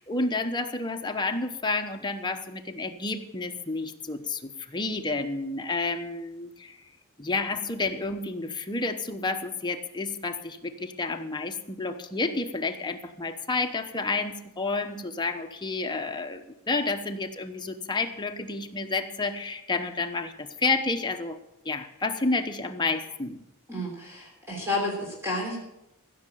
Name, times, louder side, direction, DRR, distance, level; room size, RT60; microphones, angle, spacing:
voice 1, 0.0-6.8 7.2-21.4 21.6-23.4, left 3 dB, 20° left, 5 dB, 1.0 m, -30 dB
voice 2, 23.7-25.6, left 2 dB, 10° right, -2 dB, 3.4 m, -31 dB
15.5 x 6.6 x 8.7 m, 0.86 s
head